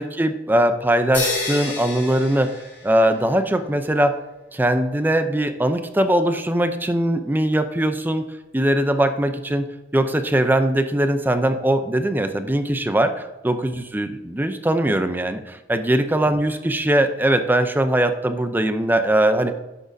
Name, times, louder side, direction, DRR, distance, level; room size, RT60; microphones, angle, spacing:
voice 1, 0.0-4.2 4.5-8.3 8.5-19.6, right 1 dB, 10° right, 8 dB, 0.5 m, -21 dB
sound 1, 1.1-3.3, left 3 dB, 10° left, 2.6 m, -29 dB
11.0 x 6.3 x 2.7 m, 1.0 s
head